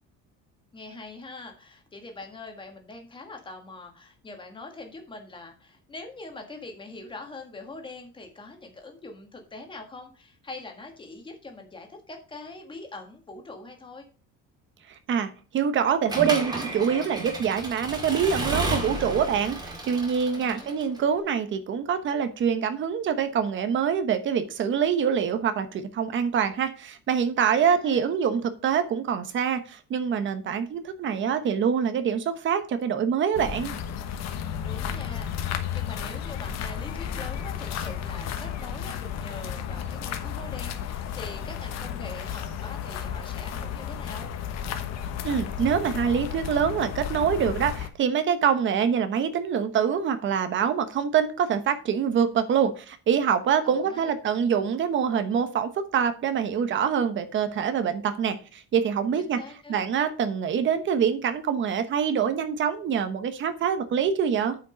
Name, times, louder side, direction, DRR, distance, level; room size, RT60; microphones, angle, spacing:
voice 1, 0.7-14.1 20.3-20.7 27.6-28.1 34.6-44.3 53.6-54.1 59.2-59.8, left 3 dB, 15° left, 3 dB, 1.6 m, -43 dB
voice 2, 15.1-19.6 19.9-33.8 45.2-59.4 59.7-64.6, right 7 dB, 40° right, 10 dB, 1.1 m, -25 dB
Accelerating revving vroom / Mechanisms, 16.1-21.0, right 2 dB, 15° right, 2.2 m, -32 dB
sound 1, 33.3-47.9, left 8 dB, 60° left, 1.2 m, -33 dB
8.9 x 5.1 x 5.1 m, 0.38 s
cardioid pair, 180°, 30 cm